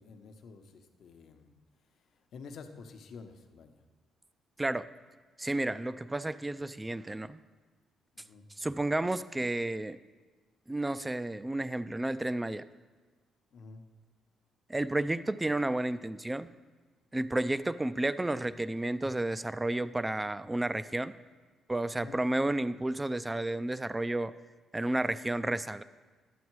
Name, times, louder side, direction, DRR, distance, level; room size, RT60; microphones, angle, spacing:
voice 1, 0.0-1.5 2.3-3.8 8.1-8.4 13.5-13.8 21.9-22.2, left 4 dB, 65° left, 6 dB, 0.9 m, -49 dB
voice 2, 5.4-7.4 8.6-10.0 10.7-12.6 14.7-16.5 17.1-21.1 21.7-24.3 24.7-25.8, right 1 dB, 15° right, 15 dB, 0.4 m, -31 dB
11.0 x 7.2 x 4.7 m, 1.3 s
cardioid pair, 90°, 0 cm